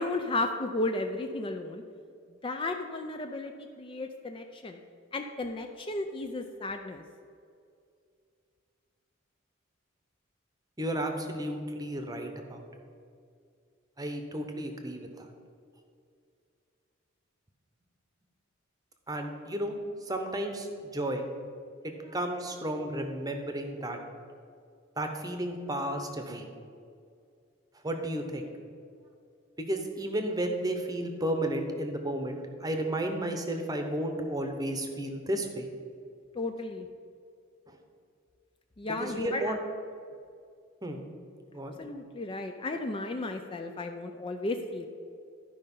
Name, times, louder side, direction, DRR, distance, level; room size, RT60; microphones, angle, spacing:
voice 1, 0.0-1.8 2.4-4.8 5.1-7.0 36.3-36.9 38.8-39.6 41.8-44.9, left 2 dB, 25° left, 5 dB, 0.4 m, -34 dB
voice 2, 10.8-12.6 14.0-15.3 19.1-19.7 20.0-21.3 21.8-24.0 25.0-26.5 27.8-28.5 29.6-35.7 37.7-37.8 39.0-39.6 40.8-41.0 41.5-41.8, right 1 dB, 20° right, 5 dB, 0.8 m, -33 dB
12.0 x 5.3 x 5.4 m, 2.4 s
head